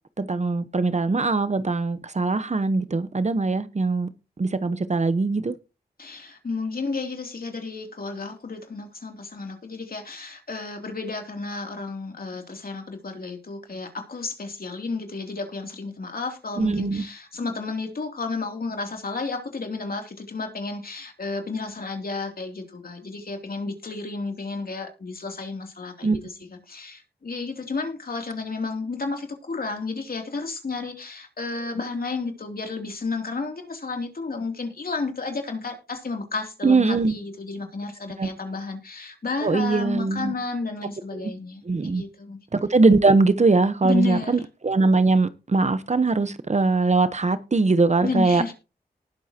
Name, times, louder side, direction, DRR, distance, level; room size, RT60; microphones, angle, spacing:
voice 1, 0.2-4.1 4.4-5.5 16.6-17.0 26.0-26.2 36.6-37.2 38.2-38.3 39.4-40.3 41.1-41.3 41.6-42.0 42.5-48.4, right 3 dB, 45° right, 1.1 m, -21 dB
voice 2, 6.0-26.3 26.7-42.4 43.8-44.4 48.0-48.5, left 3 dB, 60° left, 3.1 m, -32 dB
19.0 x 7.2 x 3.0 m
cardioid pair, 45°, 17 cm